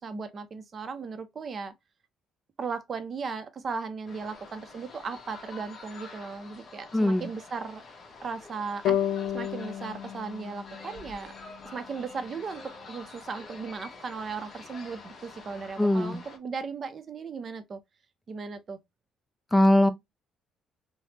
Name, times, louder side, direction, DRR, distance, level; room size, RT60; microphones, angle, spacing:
voice 1, 0.0-1.7 2.6-7.8 8.2-11.3 11.7-17.8 18.3-18.8, right 5 dB, 40° right, 0.5 m, -37 dB
sound 1, 4.1-16.4, left 3 dB, 40° left, 0.9 m, -47 dB
voice 2, 6.9-7.3 15.8-16.2 19.5-19.9, left 1 dB, 10° left, 0.4 m, -21 dB
sound 2, 8.8-12.1, left 10 dB, 80° left, 0.4 m, -32 dB
3.2 x 2.1 x 2.8 m
cardioid pair, 110°, 0 cm